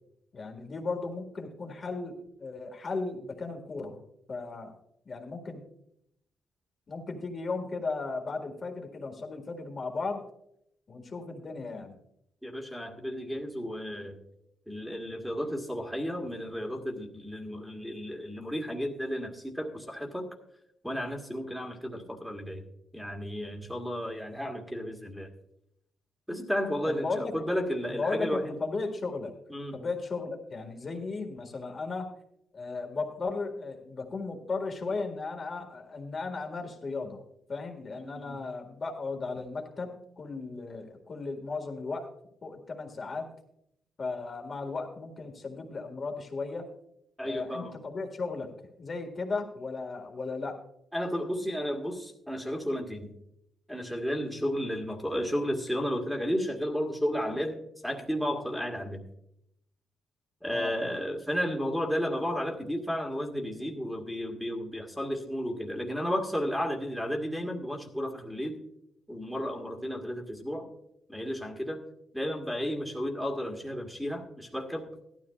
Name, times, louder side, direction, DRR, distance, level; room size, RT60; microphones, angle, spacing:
voice 1, 0.3-4.0 4.3-4.7 5.0-5.6 6.9-10.2 10.9-12.0 26.9-27.3 27.9-29.3 29.7-32.1 32.5-37.2 37.5-42.1 42.4-43.3 44.0-46.7 47.2-48.5 48.8-50.6 60.5-60.9, left 3 dB, 35° left, 3 dB, 1.8 m, -35 dB
voice 2, 12.4-14.2 14.7-20.3 20.8-22.6 22.9-25.3 26.3-28.6 29.5-29.8 38.0-38.4 47.2-47.8 50.9-53.1 53.7-59.0 60.4-68.6 69.1-70.7 71.1-71.8 72.1-74.9, equal, ahead, 0 dB, 1.6 m, -33 dB
16.5 x 12.5 x 2.4 m, 0.76 s
cardioid pair, 130°, 0 cm